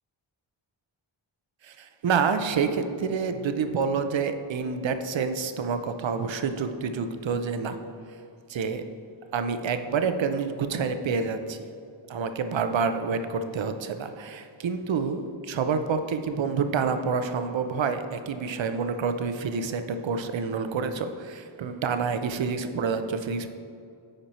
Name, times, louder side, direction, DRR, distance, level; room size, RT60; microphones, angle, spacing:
voice 1, 1.6-7.8 8.5-8.8 9.3-11.6 12.1-23.5, right 5 dB, 70° right, 9 dB, 0.7 m, -28 dB
10.5 x 4.5 x 4.2 m, 2.4 s
wide cardioid pair, 85°, 47 cm